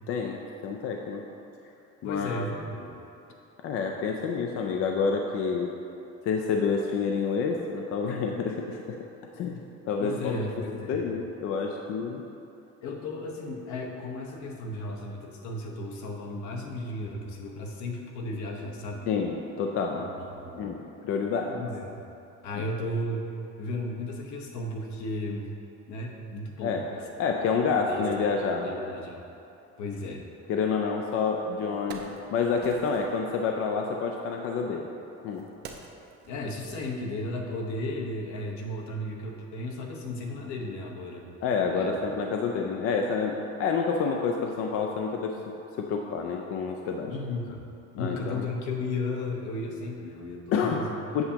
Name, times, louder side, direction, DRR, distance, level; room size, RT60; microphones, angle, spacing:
voice 1, 0.1-1.2 2.0-2.4 3.6-5.7 6.2-9.0 9.4-10.4 10.9-12.2 19.1-20.1 20.6-21.6 22.5-22.7 26.6-26.9 27.2-28.7 30.5-34.9 35.2-35.4 41.4-43.3 43.6-45.3 45.8-47.2 48.0-48.4 50.5-50.8 51.1-51.2, left 5 dB, 50° left, 2 dB, 0.4 m, -28 dB
voice 2, 2.0-2.9 10.0-11.0 12.8-19.1 20.0-20.7 21.5-22.0 22.4-23.3 23.6-25.5 25.9-27.0 27.9-29.2 29.8-30.2 36.3-41.3 41.7-41.9 47.1-47.6 47.9-51.0, left 2 dB, 70° left, 1 dB, 1.0 m, -34 dB
Wood, 31.1-31.2 31.6-33.2 34.2-37.5 37.8-38.0, right 4 dB, 35° right, 0.5 m, -47 dB
7.9 x 6.8 x 2.8 m, 2.8 s
cardioid pair, 170°, 29 cm